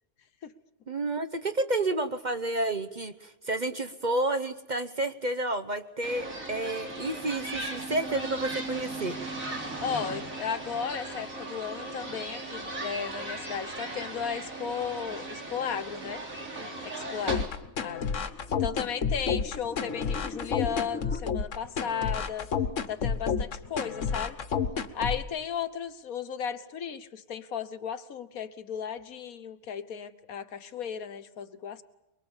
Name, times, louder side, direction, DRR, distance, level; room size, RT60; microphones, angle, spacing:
voice 1, 0.9-9.2, right 2 dB, 35° right, 10 dB, 0.9 m, -30 dB
sound 1, 6.0-17.5, right 2 dB, 65° right, 4.1 m, -37 dB
voice 2, 9.8-16.2 16.8-17.4 17.8-18.1 18.6-22.5 22.9-24.4 24.9-31.8, left 7 dB, 75° left, 11 dB, 1.6 m, -35 dB
sound 2, 16.5-21.2, left 3 dB, 10° left, 0.7 m, -43 dB
sound 3, 17.3-25.3, left 6 dB, 60° left, 1.5 m, -30 dB
23.0 x 23.0 x 7.3 m, 0.96 s
omnidirectional pair, 1.5 m